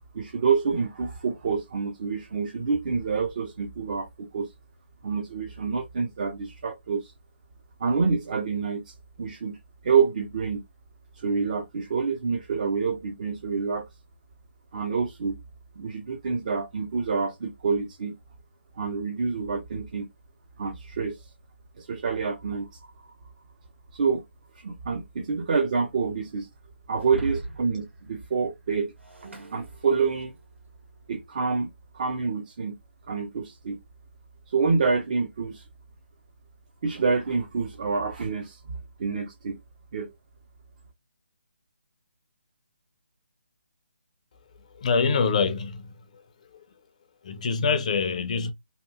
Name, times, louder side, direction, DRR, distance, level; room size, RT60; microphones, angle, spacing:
voice 1, 0.1-4.5 5.0-7.1 7.8-9.6 9.8-10.6 11.1-13.8 14.7-15.4 15.8-18.1 18.8-20.1 20.6-21.3 21.8-22.7 23.9-24.2 24.6-26.5 26.9-28.9 29.2-30.3 31.1-32.7 33.1-33.8 34.5-35.6 36.8-39.6 39.9-40.1, right 5 dB, 40° right, 0.4 m, -27 dB
Shatter, 27.0-30.5, right 2 dB, 80° right, 1.5 m, -40 dB
voice 2, 44.7-46.2 46.5-46.6 47.2-48.5, left 5 dB, 35° left, 0.4 m, -25 dB
2.8 x 2.3 x 2.2 m
figure-of-eight pair, 150°, 6 cm